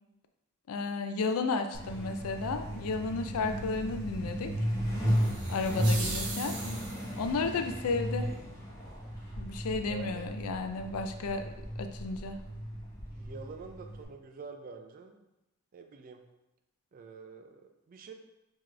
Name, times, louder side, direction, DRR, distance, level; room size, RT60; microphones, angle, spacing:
voice 1, 0.7-4.5 5.5-6.6 7.2-8.3 9.4-11.5 11.8-12.4, left 4 dB, 80° left, 8 dB, 0.4 m, -33 dB
Truck, 1.7-14.0, equal, 15° left, 1.2 m, -35 dB
sound 1, 5.1-7.3, right 3 dB, 80° right, 0.8 m, -40 dB
voice 2, 9.9-10.4 13.1-15.2 15.7-16.2 16.9-18.1, right 5 dB, 40° right, 5 dB, 0.4 m, -46 dB
4.1 x 3.0 x 3.2 m, 0.93 s
head